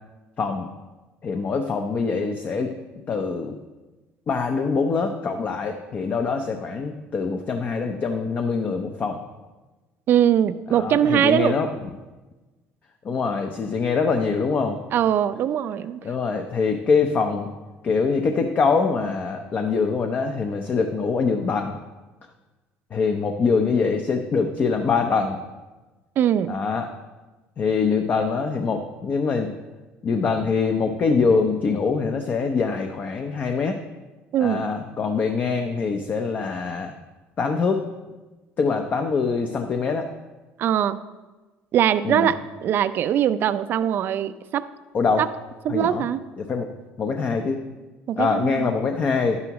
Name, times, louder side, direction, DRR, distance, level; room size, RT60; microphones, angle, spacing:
voice 1, 0.4-0.7 1.2-2.7 3.1-3.6 4.3-9.2 10.7-11.7 13.0-14.9 16.0-17.5 17.8-21.7 22.9-25.4 26.5-26.9 27.6-29.5 30.0-33.8 34.4-36.9 37.4-37.8 38.6-40.1 42.0-42.3 44.9-45.2 45.7-46.1 46.4-46.7 47.0-47.6 48.2-49.4, left 5 dB, 35° left, 5 dB, 0.7 m, -24 dB
voice 2, 10.1-11.6 14.9-16.0 26.2-26.6 34.3-34.7 40.6-41.0 41.7-44.7 45.2-45.3 45.6-46.2 48.1-48.7, right 10 dB, 50° right, 13 dB, 0.4 m, -21 dB
11.0 x 9.5 x 3.0 m, 1.2 s
cardioid pair, 115°, 5 cm